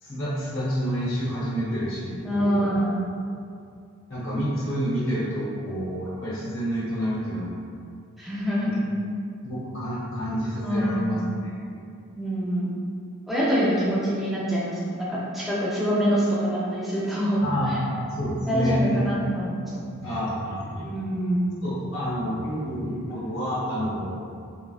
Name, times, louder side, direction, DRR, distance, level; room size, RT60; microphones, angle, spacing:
voice 1, 0.0-2.7 4.1-7.5 8.6-8.8 9.4-11.8 17.4-19.0 20.0-20.9 21.6-24.2, equal, 60° left, -8 dB, 0.8 m, -28 dB
voice 2, 2.2-3.0 8.2-8.7 10.6-11.3 12.1-12.7 13.3-17.4 17.7-17.8 18.5-19.9 20.8-21.4, equal, ahead, -8 dB, 0.4 m, -25 dB
3.4 x 2.3 x 2.3 m, 2.4 s
head